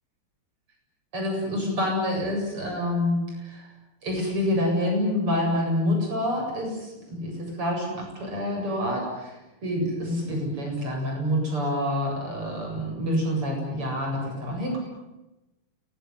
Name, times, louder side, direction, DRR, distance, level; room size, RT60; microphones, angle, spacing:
voice 1, 1.1-3.7 4.0-14.8, left 1 dB, 90° right, 1 dB, 9.0 m, -27 dB
28.5 x 20.0 x 9.5 m, 0.99 s
omnidirectional pair, 2.4 m